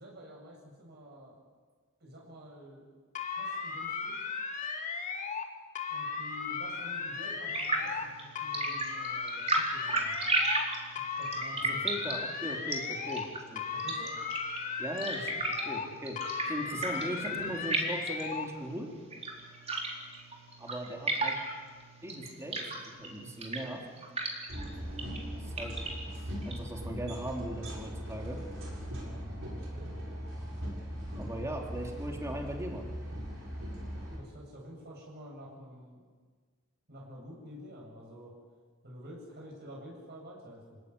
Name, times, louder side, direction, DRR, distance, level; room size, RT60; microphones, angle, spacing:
voice 1, 0.0-1.4 2.0-2.9 3.4-4.3 5.9-10.2 11.1-11.9 13.7-14.2 16.7-17.0 28.9-29.2 29.5-29.9 34.1-36.0 36.9-38.3 38.8-40.8, equal, 55° right, -2 dB, 8.0 m, -49 dB
sound 1, 3.2-5.5 5.8-8.1 8.4-10.7 11.0-13.3 13.6-15.9 16.2-18.5, left 5 dB, 40° left, 2.2 m, -36 dB
sound 2, 7.5-26.6, right 2 dB, 30° right, 4.3 m, -36 dB
voice 2, 11.6-13.6 14.8-18.9 20.6-21.4 22.0-23.8 25.4-25.7 26.4-28.4 31.1-32.8, right 1 dB, 15° right, 1 dB, 3.4 m, -39 dB
sound 3, 24.5-34.2, equal, 70° right, 7.1 m, -39 dB
28.0 x 18.0 x 9.8 m, 1.5 s
head